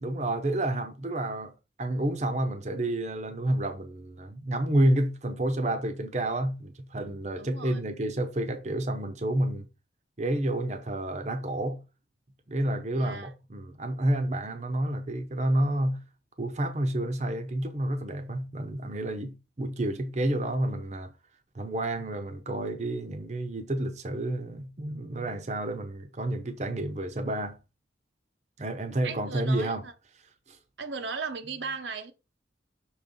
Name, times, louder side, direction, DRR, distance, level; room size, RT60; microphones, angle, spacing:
voice 1, 0.0-1.5 1.8-9.7 10.2-11.8 12.5-16.0 16.4-21.1 21.5-27.6 28.6-29.9 30.5-30.6, right 1 dB, 40° right, 0.7 m, -29 dB
voice 2, 7.4-7.8 12.9-13.3 29.0-29.9 30.8-32.1, right 4 dB, 80° right, 0.9 m, -37 dB
6.3 x 3.2 x 5.2 m
head